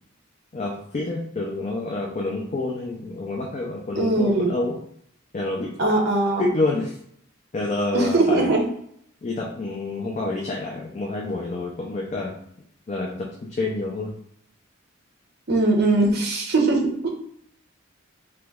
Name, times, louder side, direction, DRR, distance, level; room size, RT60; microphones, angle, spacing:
voice 1, 0.5-4.8 5.3-5.8 6.4-6.9 7.5-8.5 9.2-12.3 12.9-14.1, left 2 dB, 35° left, -1 dB, 0.4 m, -28 dB
voice 2, 3.9-4.6 5.8-6.4 7.9-8.6 15.5-17.1, right 2 dB, 50° right, 1 dB, 0.7 m, -20 dB
2.9 x 2.3 x 3.4 m, 0.67 s
head